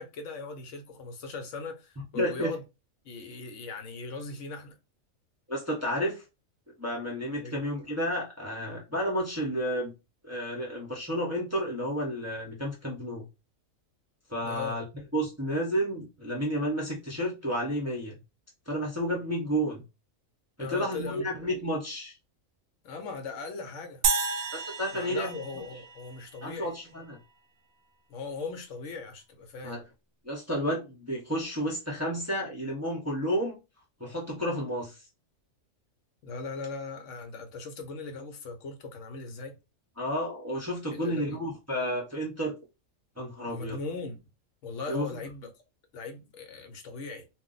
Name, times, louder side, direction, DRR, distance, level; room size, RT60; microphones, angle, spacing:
voice 1, 0.0-2.6 3.0-4.7 7.4-7.6 14.4-14.8 20.6-21.3 22.8-24.1 24.9-26.7 28.1-29.8 36.2-39.6 40.9-41.4 43.4-44.2 44.6-45.5 45.9-47.3, left 4 dB, 70° left, 1.0 m, -39 dB
voice 2, 2.1-2.5 5.5-6.2 6.8-9.9 10.2-13.3 14.3-14.8 15.1-18.2 18.7-19.8 20.6-22.1 24.5-25.3 26.4-27.2 29.6-29.8 30.2-33.6 34.0-35.0 40.0-42.6 43.2-43.8 44.9-45.1, equal, 15° right, 0.6 m, -31 dB
sound 1, 24.0-26.5, right 4 dB, 85° right, 1.0 m, -31 dB
2.5 x 2.1 x 3.8 m
omnidirectional pair, 1.4 m